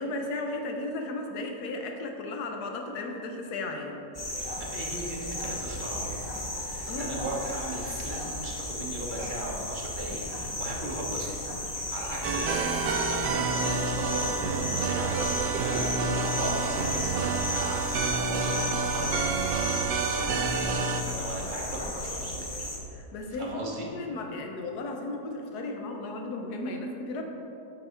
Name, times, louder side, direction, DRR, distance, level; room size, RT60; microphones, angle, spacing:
voice 1, 0.0-4.0 6.9-7.1 22.9-27.2, left 2 dB, 70° left, 3 dB, 1.3 m, -35 dB
sound 1, 4.1-22.8, left 1 dB, 30° left, 0.5 m, -34 dB
voice 2, 4.5-6.3 6.7-11.3 11.7-19.2 20.1-22.7 23.3-23.9, right 1 dB, 35° right, -3 dB, 1.1 m, -37 dB
sound 2, 12.2-21.0, right 4 dB, 80° right, 1.2 m, -29 dB
8.7 x 4.6 x 4.5 m, 2.9 s
omnidirectional pair, 1.8 m